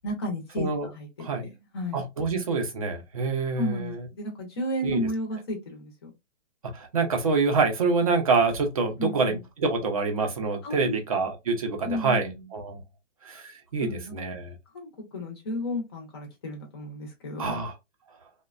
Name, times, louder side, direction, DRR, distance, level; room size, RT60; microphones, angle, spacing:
voice 1, 0.0-1.5 1.7-2.0 3.6-6.1 9.0-9.4 10.6-11.2 11.8-12.5 13.8-14.1 14.7-17.6, left 1 dB, 20° left, 0.6 m, -33 dB
voice 2, 1.9-4.1 4.8-5.1 6.6-12.8 13.2-14.5 17.4-17.7, right 4 dB, 30° right, 0.5 m, -26 dB
3.1 x 2.1 x 2.4 m
hypercardioid pair, 175°, 37 cm